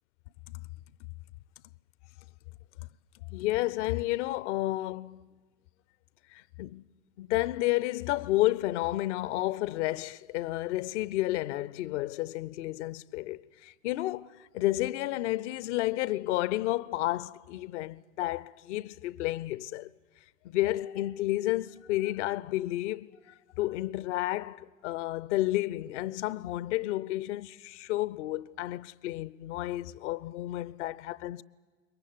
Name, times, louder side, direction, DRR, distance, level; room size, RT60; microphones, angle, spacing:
voice 1, 3.3-5.3 6.3-6.8 7.2-19.9 20.4-31.4, left 17 dB, 65° left, 0.7 m, -31 dB
22.0 x 20.0 x 9.4 m
hypercardioid pair, 80°, 39 cm